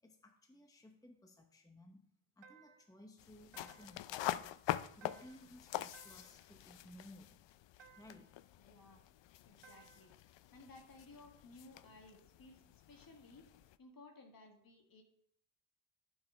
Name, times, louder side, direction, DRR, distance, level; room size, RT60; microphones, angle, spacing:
voice 1, 0.0-2.1 2.4-4.6 5.0-7.4 8.0-8.3, left 1 dB, 10° left, 4 dB, 0.9 m, -59 dB
sound 1, 2.4-3.0 3.5-4.1 5.0-5.5 5.9-6.5 7.8-8.3 9.6-10.2, right 6 dB, 80° right, 0.9 m, -62 dB
sound 2, 3.2-13.8, left 13 dB, 75° left, 0.5 m, -45 dB
voice 2, 8.6-9.0 9.4-10.1 10.5-13.4 13.8-15.0, left 2 dB, 50° left, 3 dB, 1.9 m, -58 dB
11.0 x 5.4 x 5.0 m, 0.68 s
wide cardioid pair, 120°, 44 cm